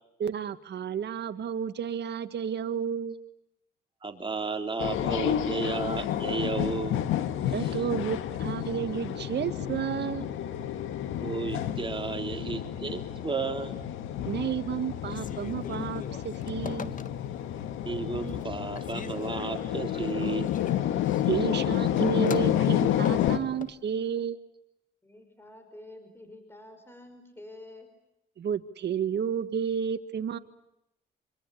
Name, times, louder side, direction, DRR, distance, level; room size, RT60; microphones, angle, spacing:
voice 1, 0.2-3.2 7.5-10.3 14.3-17.0 21.3-24.4 28.4-30.4, right 7 dB, 60° right, 10 dB, 1.9 m, -31 dB
voice 2, 4.0-7.1 7.5-7.7 11.2-13.7 17.9-20.5 21.3-21.6, right 4 dB, 25° right, 5 dB, 3.6 m, -33 dB
sound 1, 4.8-23.4, left 11 dB, 90° left, 1.9 m, -30 dB
Telephone, 15.0-17.5 18.0-18.5 18.8-23.8, left 6 dB, 40° left, 1.5 m, -43 dB
voice 3, 25.0-27.9, left 1 dB, 10° left, 8 dB, 5.3 m, -48 dB
26.0 x 25.0 x 8.6 m, 0.84 s
cardioid pair, 90°, 20 cm